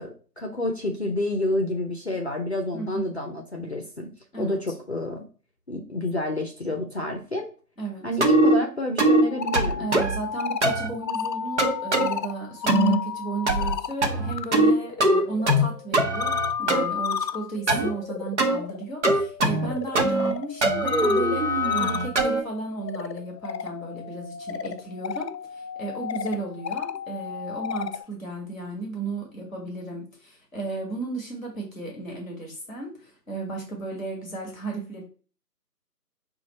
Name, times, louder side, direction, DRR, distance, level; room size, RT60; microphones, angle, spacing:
voice 1, 0.0-4.1 4.4-5.2 5.7-7.5 8.0-9.9, left 1 dB, 45° left, 2 dB, 0.6 m, -29 dB
voice 2, 2.7-3.1 4.3-4.7 7.8-8.1 9.8-35.0, right 3 dB, 5° left, -5 dB, 0.9 m, -34 dB
sound 1, 8.2-8.6 9.0-9.2 9.5-10.2 10.6-10.9 11.6-12.1 12.7-13.0 13.5-13.8 14.0-14.7 15.0-15.7 15.9-16.8 17.7-17.9 18.4-18.6 19.0-19.7 20.0-20.3 20.6-22.4, right 1 dB, 45° right, 0.9 m, -21 dB
sound 2, 9.2-14.5 14.8-28.0, left 7 dB, 85° left, 0.6 m, -33 dB
5.0 x 2.5 x 4.2 m, 0.39 s
figure-of-eight pair, 150°, 48 cm